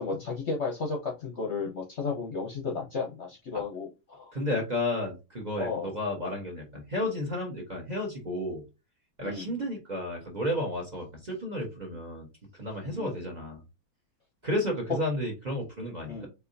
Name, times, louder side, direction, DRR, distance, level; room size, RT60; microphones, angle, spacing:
voice 1, 0.0-4.3 5.6-5.9 9.2-9.5 12.9-13.2 16.1-16.3, left 4 dB, 50° left, 0 dB, 1.0 m, -33 dB
voice 2, 4.3-8.6 9.2-12.3 12.5-13.6 14.4-16.3, left 1 dB, 30° right, 0 dB, 1.1 m, -32 dB
4.7 x 3.5 x 2.7 m, 0.27 s
omnidirectional pair, 1.9 m